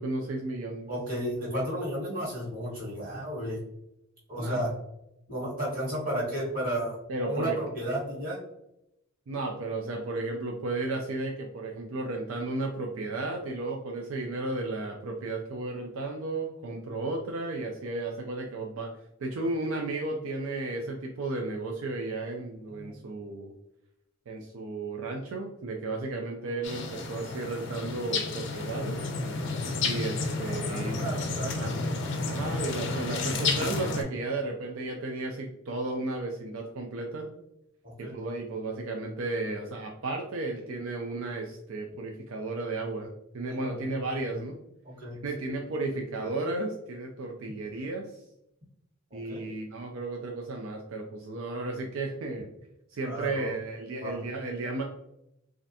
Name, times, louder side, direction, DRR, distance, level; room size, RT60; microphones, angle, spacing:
voice 1, 0.0-0.9 4.4-4.6 7.1-7.6 9.3-18.9 19.2-23.5 24.3-29.1 29.8-31.0 31.4-31.7 32.3-37.3 38.0-44.6 45.2-48.2 49.1-52.5 52.9-54.8, right 2 dB, 85° right, 1 dB, 0.4 m, -34 dB
voice 2, 0.9-3.6 4.3-4.7 5.3-8.4 22.7-23.0 30.5-31.6 32.6-32.8 37.8-38.1 43.4-43.9 44.8-45.5 49.1-49.5 53.0-53.5 54.0-54.2, right 1 dB, 45° right, -5 dB, 1.4 m, -33 dB
sound 1, 26.6-34.0, left 3 dB, 60° left, 0.5 m, -31 dB
3.2 x 2.5 x 2.6 m, 0.81 s
head